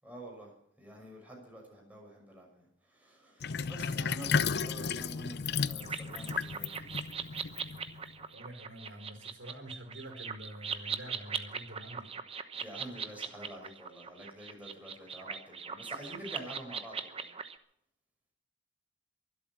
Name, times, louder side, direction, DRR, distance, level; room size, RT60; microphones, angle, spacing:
voice 1, 0.0-0.5 0.8-6.9 12.6-17.3, right 1 dB, 10° right, -1 dB, 6.1 m, -48 dB
Sink (filling or washing), 3.4-8.1, left 6 dB, 60° left, 0.6 m, -33 dB
sound 1, 5.8-17.6, right 6 dB, 30° right, 1.0 m, -40 dB
voice 2, 8.3-12.1, right 1 dB, 85° right, 4 dB, 4.3 m, -47 dB
23.0 x 8.1 x 7.3 m, 0.71 s
head